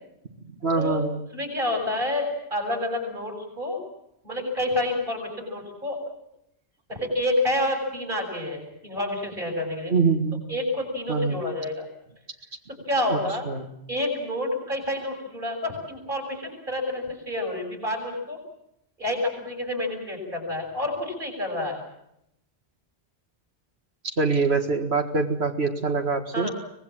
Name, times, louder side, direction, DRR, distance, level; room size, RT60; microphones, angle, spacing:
voice 1, 0.6-1.2 9.9-10.4 11.1-11.4 13.1-13.2 13.5-13.7 24.2-26.5, right 4 dB, 75° right, 4 dB, 2.1 m, -24 dB
voice 2, 1.3-3.8 4.2-6.0 6.9-9.9 10.5-11.9 12.9-13.4 13.9-18.4 19.0-21.8 26.3-26.5, left 1 dB, 55° right, 2 dB, 7.6 m, -28 dB
24.5 x 19.5 x 7.6 m, 0.79 s
omnidirectional pair, 1.1 m